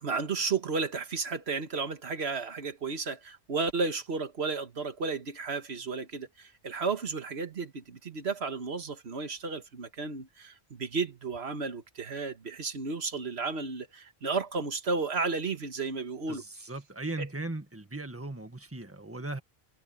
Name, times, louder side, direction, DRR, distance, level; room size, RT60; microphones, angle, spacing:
voice 1, 0.0-16.4, right 4 dB, 90° right, 1.7 m, -33 dB
voice 2, 16.3-19.4, right 2 dB, 15° right, 1.7 m, -38 dB
omnidirectional pair, 1.1 m